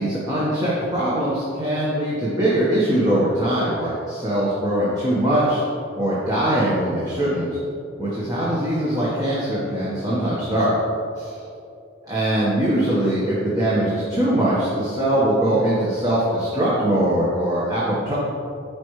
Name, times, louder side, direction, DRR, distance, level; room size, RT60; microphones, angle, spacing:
voice 1, 0.0-5.6 5.9-7.5 8.0-10.7 11.2-11.3 12.1-18.1, right 1 dB, 20° right, -8 dB, 1.3 m, -21 dB
13.5 x 5.2 x 3.2 m, 2.5 s
head